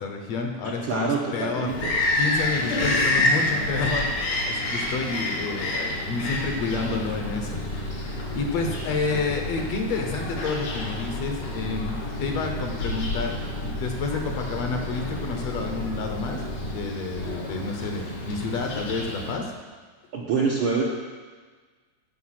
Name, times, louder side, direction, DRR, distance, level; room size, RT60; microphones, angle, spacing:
voice 1, 0.0-1.7 2.2-16.4 16.7-19.5, left 4 dB, 65° left, 3 dB, 1.9 m, -30 dB
voice 2, 0.6-1.9 2.6-2.9 20.1-20.8, right 5 dB, 65° right, -3 dB, 1.3 m, -26 dB
Bird vocalization bird call bird song, 1.7-19.3, left 1 dB, 90° left, 3.6 m, -29 dB
sound 1, 5.8-16.8, left 1 dB, 50° left, 1.1 m, -35 dB
14.5 x 5.4 x 5.8 m, 1.4 s
omnidirectional pair, 3.4 m